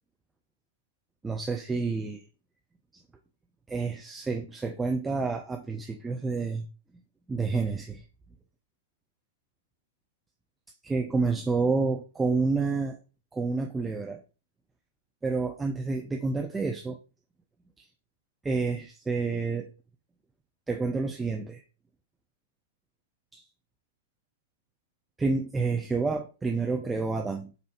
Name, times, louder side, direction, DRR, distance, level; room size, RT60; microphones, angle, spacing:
voice 1, 1.2-2.2 3.7-6.7 7.3-8.0 10.8-13.0 13.3-14.2 15.2-17.0 18.4-19.7 20.7-21.6 23.3-23.4 25.2-27.5, right 4 dB, 10° right, 2 dB, 0.5 m, -29 dB
5.3 x 2.6 x 3.3 m, 0.33 s
figure-of-eight pair, 105°, 0 cm